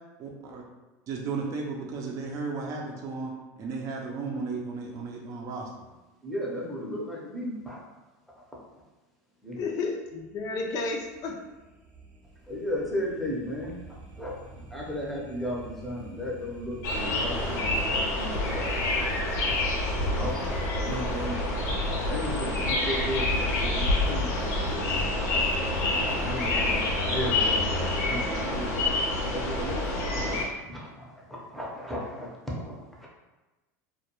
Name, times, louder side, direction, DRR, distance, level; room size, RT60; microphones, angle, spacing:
voice 1, 0.2-0.6 1.1-3.3 3.6-5.7 21.1-21.4, right 4 dB, 40° right, -1 dB, 0.5 m, -34 dB
voice 2, 6.2-7.8 9.4-9.7 12.5-13.8 14.2-14.4 14.7-18.7 19.4-19.5 20.0-20.3 20.8-21.4 22.1-25.4 26.2-28.9 29.3-30.4 30.6-33.1, equal, ahead, -4 dB, 0.7 m, -35 dB
voice 3, 9.6-11.4, left 3 dB, 45° left, 1 dB, 0.4 m, -32 dB
sound 1, 10.1-28.0, right 1 dB, 25° right, 0.9 m, -42 dB
sound 2, 16.8-30.5, left 2 dB, 75° left, 0.8 m, -27 dB
2.2 x 2.2 x 2.9 m, 1.1 s
supercardioid pair, 110°, 8 cm